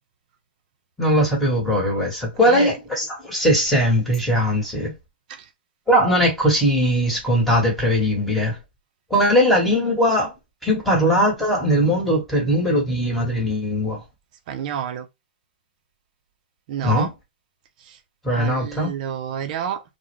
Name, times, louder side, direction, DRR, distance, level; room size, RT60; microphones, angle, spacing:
voice 1, 1.0-4.9 5.9-8.6 9.1-10.3 10.6-14.0 16.8-17.1 18.2-18.9, equal, ahead, 1.1 m, -20 dB
voice 2, 14.5-15.1 16.7-17.1 18.3-19.8, right 8 dB, 45° right, 0.5 m, -29 dB
2.3 x 2.1 x 3.0 m
hypercardioid pair, 135°, 6 cm